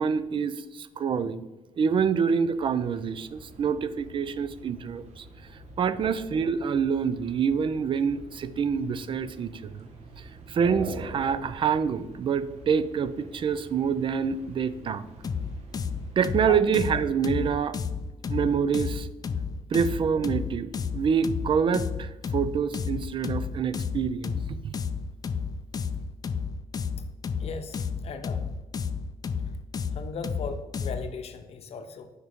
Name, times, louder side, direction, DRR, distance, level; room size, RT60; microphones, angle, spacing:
voice 1, 0.0-1.5 1.8-5.2 5.8-9.9 10.2-15.1 16.2-17.8 18.3-19.1 19.7-24.8, right 6 dB, 45° right, 14 dB, 0.4 m, -26 dB
sound 1, 2.5-16.4, right 2 dB, 60° right, 1.2 m, -45 dB
sound 2, 15.2-31.1, left 5 dB, 30° left, 0.4 m, -32 dB
voice 2, 27.4-28.5 29.9-32.1, left 5 dB, 55° left, 8 dB, 0.8 m, -38 dB
6.4 x 4.7 x 3.5 m, 1.1 s
cardioid pair, 90°, 12 cm